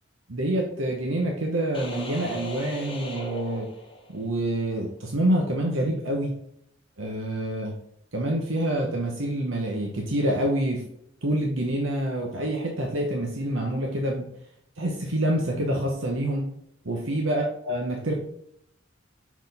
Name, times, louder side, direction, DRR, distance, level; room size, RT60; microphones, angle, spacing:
voice 1, 0.3-3.7 4.1-6.3 7.0-7.7 8.1-10.8 11.2-14.3 14.8-16.5 16.8-18.2, right 1 dB, 85° right, 0 dB, 1.0 m, -27 dB
sound 1, 1.7-4.4, equal, 25° left, 1.1 m, -38 dB
5.9 x 4.6 x 3.5 m, 0.74 s
head